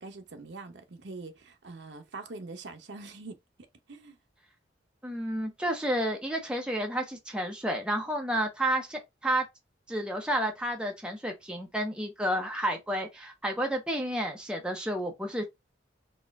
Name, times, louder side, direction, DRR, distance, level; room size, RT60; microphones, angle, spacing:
voice 1, 0.0-3.4 3.9-4.2, right 3 dB, 70° right, 0.7 m, -43 dB
voice 2, 5.0-9.4 9.9-15.4, right 1 dB, 5° right, 0.7 m, -31 dB
4.2 x 2.4 x 3.5 m
head